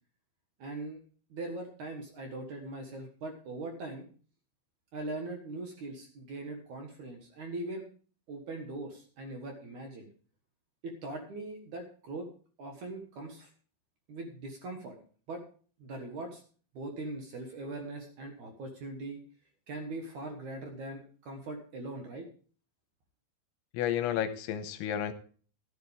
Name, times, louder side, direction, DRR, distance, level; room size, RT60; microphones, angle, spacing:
voice 1, 0.6-1.0 1.3-4.0 4.9-7.8 8.3-10.1 10.8-12.3 12.6-13.5 14.1-15.0 15.3-15.4 15.8-16.4 16.7-19.2 19.7-22.3, right 2 dB, 60° right, 3 dB, 2.1 m, -41 dB
voice 2, 23.7-25.1, left 10 dB, 85° left, 9 dB, 3.2 m, -31 dB
14.0 x 11.0 x 3.5 m, 0.41 s
omnidirectional pair, 5.3 m